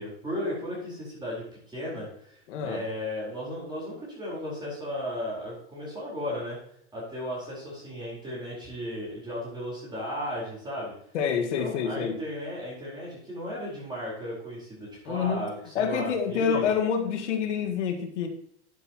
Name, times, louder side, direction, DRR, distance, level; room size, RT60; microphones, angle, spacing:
voice 1, 0.0-2.4 2.6-6.6 6.9-10.9 11.3-16.7, equal, 10° right, -6 dB, 4.5 m, -35 dB
voice 2, 2.5-2.9 11.1-12.2 15.1-15.5 15.8-18.3, left 7 dB, 75° left, 5 dB, 1.9 m, -27 dB
11.0 x 8.2 x 3.0 m, 0.70 s
supercardioid pair, 130°, 35 cm